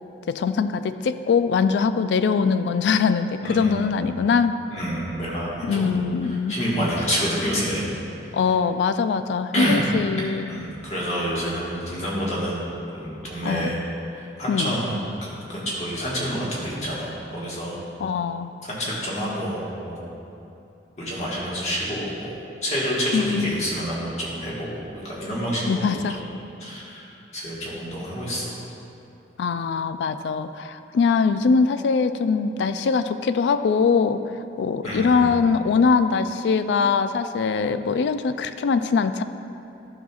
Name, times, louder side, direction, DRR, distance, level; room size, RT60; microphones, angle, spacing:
voice 1, 0.3-4.6 5.6-6.5 8.3-10.5 13.4-13.7 14.5-14.7 18.0-18.5 23.1-23.6 25.7-26.2 29.4-34.2 34.6-39.2, left 5 dB, 80° left, 11 dB, 0.3 m, -22 dB
voice 2, 3.4-3.9 4.7-5.9 6.2-7.9 9.5-9.9 10.5-12.6 12.9-13.8 14.4-17.8 18.6-20.1 21.0-22.3 22.6-25.9 26.1-26.3 26.6-27.0 27.3-28.5 34.8-35.3, equal, 40° left, -6 dB, 1.5 m, -28 dB
11.5 x 5.8 x 2.4 m, 2.8 s
head